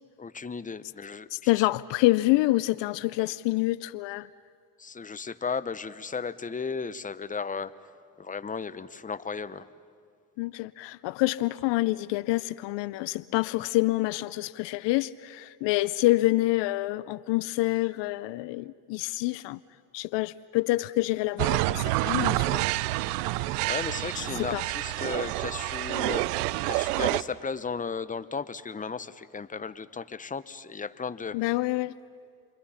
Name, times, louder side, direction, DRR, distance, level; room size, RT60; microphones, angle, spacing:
voice 1, 0.2-1.6 4.8-7.7 8.2-9.7 23.3-31.6, left 5 dB, 15° left, 0.9 m, -35 dB
voice 2, 1.3-4.3 10.4-19.6 19.9-22.7 24.2-24.6 31.3-31.9, left 19 dB, 70° left, 0.6 m, -27 dB
sound 1, 21.4-27.2, right 18 dB, 90° right, 0.6 m, -28 dB
29.5 x 24.0 x 5.8 m
supercardioid pair, 70°, 46 cm